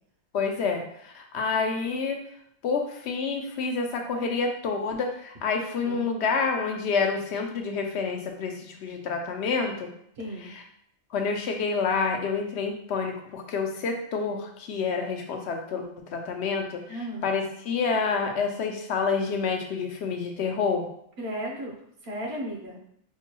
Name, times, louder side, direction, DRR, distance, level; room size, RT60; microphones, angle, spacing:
voice 1, 0.3-2.2 2.6-9.9 10.4-10.6 11.1-20.9, left 5 dB, 75° left, 3 dB, 0.9 m, -28 dB
voice 2, 10.2-10.5 16.9-17.2 21.2-21.8 22.0-22.8, equal, 65° right, 0 dB, 1.0 m, -34 dB
4.5 x 2.2 x 2.9 m, 0.69 s
omnidirectional pair, 1.1 m